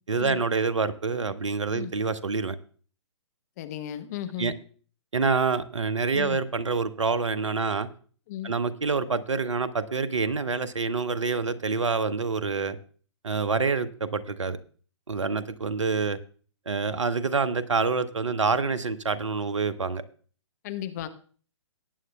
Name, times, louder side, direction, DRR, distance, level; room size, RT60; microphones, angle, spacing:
voice 1, 0.1-2.6 4.4-4.5 5.1-7.9 8.4-12.8 13.2-14.6 15.1-16.2 16.7-20.0, right 4 dB, 75° right, 0.9 m, -27 dB
voice 2, 3.6-4.5 6.1-6.4 8.3-8.5 20.6-21.1, left 11 dB, 35° left, 0.9 m, -35 dB
19.0 x 9.4 x 2.3 m
figure-of-eight pair, 125°, 16 cm